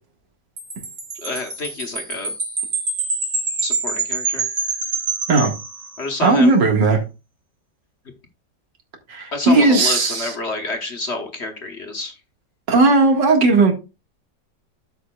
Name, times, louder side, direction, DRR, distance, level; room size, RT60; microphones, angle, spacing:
Wind chime, 0.6-6.3, right 4 dB, 50° right, 2.8 m, -26 dB
voice 1, 1.1-2.3 3.6-4.4 6.0-6.6 9.3-12.1, left 2 dB, 45° left, 1.2 m, -28 dB
voice 2, 6.2-7.0 9.1-10.3 12.7-13.7, right 3 dB, 80° right, 2.4 m, -16 dB
13.0 x 5.8 x 2.3 m
omnidirectional pair, 1.9 m